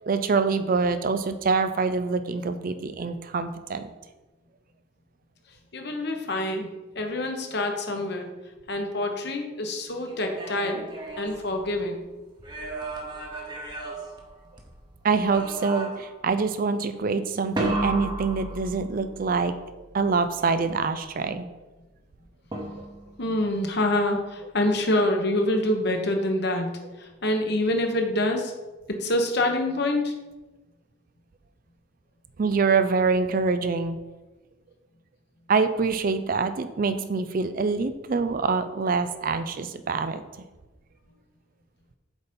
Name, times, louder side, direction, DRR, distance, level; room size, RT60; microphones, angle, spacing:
voice 1, 0.0-3.9 15.0-19.6 19.9-21.5 32.4-34.0 35.5-40.2, right 4 dB, 45° right, 10 dB, 0.4 m, -25 dB
voice 2, 5.7-6.7 6.9-8.3 8.7-10.9 11.2-12.0 23.2-26.7 27.0-28.5 28.9-30.1, left 1 dB, 55° left, 3 dB, 1.1 m, -26 dB
sound 1, 10.1-12.0 12.4-14.8 15.3-16.2 17.6-19.2 22.5-23.2, right 2 dB, 20° right, 1.0 m, -33 dB
8.0 x 4.1 x 5.3 m, 1.2 s
head